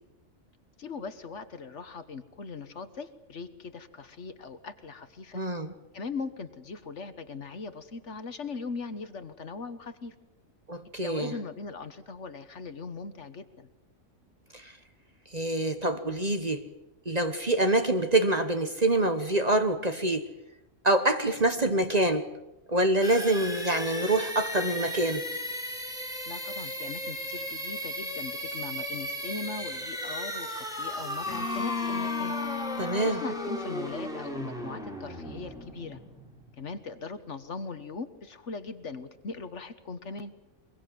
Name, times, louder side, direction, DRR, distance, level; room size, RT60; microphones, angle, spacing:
voice 1, 0.8-5.4 5.9-10.1 11.0-13.7 26.3-32.3 32.9-36.0 36.6-40.3, left 4 dB, 60° left, 1.6 m, -40 dB
voice 2, 5.3-5.7 10.7-11.3 14.5-14.7 15.3-16.6 17.0-20.3 20.8-22.3 22.7-25.2 32.8-33.2, right 1 dB, 30° right, 1.2 m, -26 dB
sound 1, 23.0-36.7, equal, ahead, 4.3 m, -36 dB
Bowed string instrument, 31.3-35.0, left 6 dB, 80° left, 2.1 m, -35 dB
23.5 x 23.0 x 7.6 m
omnidirectional pair, 1.4 m